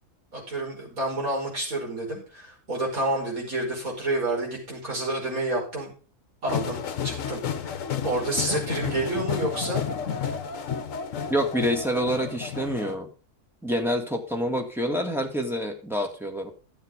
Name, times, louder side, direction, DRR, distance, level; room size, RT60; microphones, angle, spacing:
voice 1, 0.3-5.9 6.4-9.8, right 2 dB, 65° right, -3 dB, 5.9 m, -29 dB
sound 1, 6.5-12.9, left 7 dB, 60° left, 1.3 m, -31 dB
voice 2, 11.3-13.1 13.6-16.5, equal, ahead, 1 dB, 2.1 m, -27 dB
12.5 x 8.0 x 5.3 m, 0.36 s
omnidirectional pair, 1.6 m